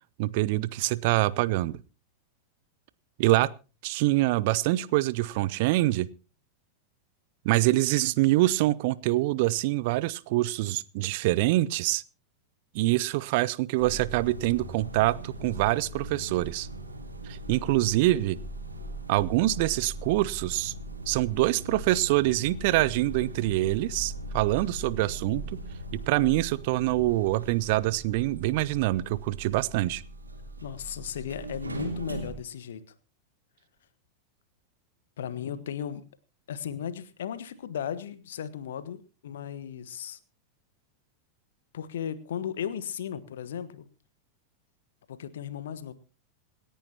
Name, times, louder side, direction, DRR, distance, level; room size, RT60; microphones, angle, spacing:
voice 1, 0.2-1.8 3.2-3.5 3.8-6.1 7.4-12.0 12.7-16.7 17.2-18.4 19.1-20.7 21.1-25.4 25.9-30.0, right 18 dB, 50° right, 20 dB, 0.6 m, -25 dB
sound 1, 13.7-32.3, right 2 dB, 80° right, 3.3 m, -39 dB
voice 2, 30.6-32.9 35.2-36.0 36.5-40.2 41.7-43.9 45.1-45.9, left 9 dB, 60° left, 14 dB, 1.4 m, -36 dB
27.0 x 10.0 x 2.9 m, 0.34 s
figure-of-eight pair, 90°, 0 cm